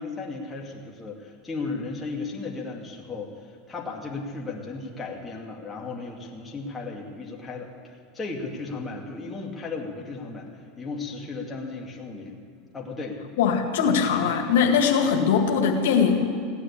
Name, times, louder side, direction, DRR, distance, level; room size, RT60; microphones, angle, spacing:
voice 1, 0.0-3.3 3.7-10.5 10.8-12.4 12.7-13.2 13.9-14.0 14.5-14.7, left 3 dB, 15° left, -2 dB, 2.4 m, -35 dB
voice 2, 13.4-16.2, left 6 dB, 90° left, 2 dB, 2.0 m, -21 dB
17.0 x 9.9 x 8.6 m, 2.4 s
supercardioid pair, 130°, 0 cm